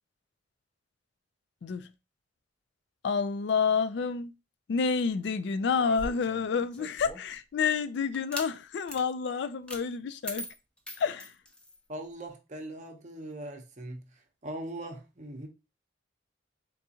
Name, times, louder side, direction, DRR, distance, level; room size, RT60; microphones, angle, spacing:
voice 1, 3.0-4.3 4.7-10.4 11.0-11.3, left 5 dB, 65° left, 0.4 m, -29 dB
sound 1, 5.8-7.4 8.1-8.5 8.9-9.0 9.7-9.8 10.2-11.8, equal, 5° left, 0.6 m, -41 dB
voice 2, 11.9-14.1 14.4-15.5, right 1 dB, 40° right, 0.7 m, -40 dB
3.9 x 3.5 x 2.8 m
head